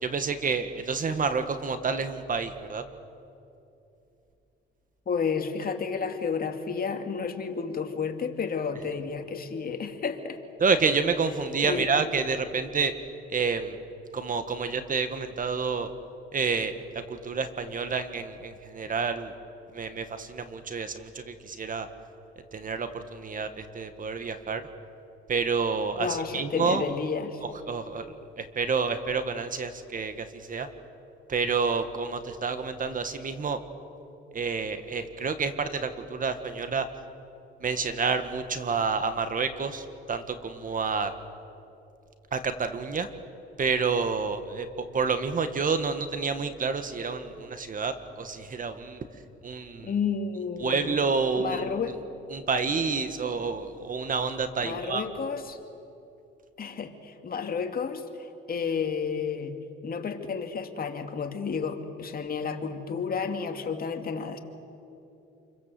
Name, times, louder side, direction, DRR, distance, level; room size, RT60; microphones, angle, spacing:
voice 1, 0.0-2.8 10.6-12.9 13.3-13.8 14.1-15.9 16.3-19.3 19.7-21.9 22.5-24.6 25.3-26.9 27.7-28.0 28.4-30.7 31.3-33.6 34.3-36.9 37.6-41.1 42.3-43.1 43.6-49.0 49.4-49.9 50.6-51.9 52.3-55.0, right 5 dB, 45° right, 9 dB, 1.8 m, -29 dB
voice 2, 5.1-10.4 11.6-11.9 26.0-27.4 49.8-51.0 51.4-52.0 54.6-55.6 56.6-64.4, left 6 dB, 50° left, 5 dB, 2.4 m, -31 dB
28.5 x 23.0 x 7.8 m, 2.8 s
cardioid pair, 90°, 20 cm